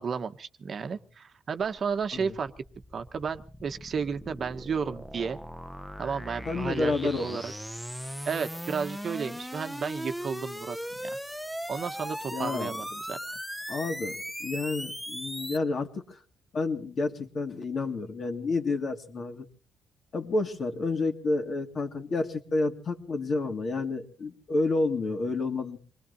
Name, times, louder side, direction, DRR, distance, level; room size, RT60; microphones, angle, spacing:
voice 1, 0.0-2.5 2.9-5.4 6.0-7.5 8.3-10.8 11.0-11.2 11.7-13.2, right 6 dB, 50° right, 9 dB, 1.0 m, -33 dB
sound 1, 1.6-15.6, equal, ahead, 0.8 m, -39 dB
voice 2, 6.5-7.4 12.3-12.7 13.7-16.2 16.5-19.5 20.1-25.8, left 3 dB, 50° left, 5 dB, 2.3 m, -30 dB
26.5 x 20.5 x 2.7 m, 0.42 s
cardioid pair, 90°, 0 cm